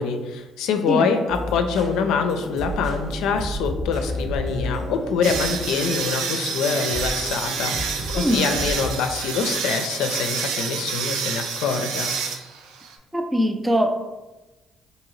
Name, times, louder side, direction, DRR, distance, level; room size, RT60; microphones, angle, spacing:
voice 1, 0.0-12.1, left 5 dB, 85° left, 6 dB, 0.4 m, -25 dB
sound 1, 1.3-8.9, equal, 70° right, 1.0 m, -32 dB
sound 2, 5.2-12.9, right 6 dB, 90° right, 0.4 m, -28 dB
voice 2, 8.2-8.5 13.1-13.9, equal, 10° right, 5 dB, 0.4 m, -21 dB
3.7 x 2.8 x 3.1 m, 1.1 s
cardioid pair, 95°, 0 cm